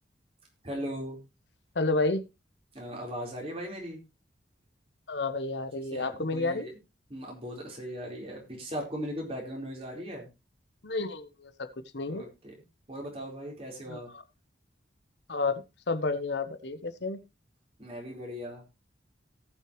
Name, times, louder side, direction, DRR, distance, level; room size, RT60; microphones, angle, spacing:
voice 1, 0.6-1.2 2.7-4.0 5.9-6.7 7.1-10.3 12.1-12.5 12.9-14.1 17.8-18.6, equal, 35° right, -1 dB, 4.4 m, -38 dB
voice 2, 1.7-2.2 5.1-6.7 10.8-11.7 11.9-12.2 13.9-14.2 15.3-17.2, left 3 dB, 70° left, 10 dB, 1.0 m, -30 dB
18.5 x 6.4 x 3.1 m, 0.26 s
head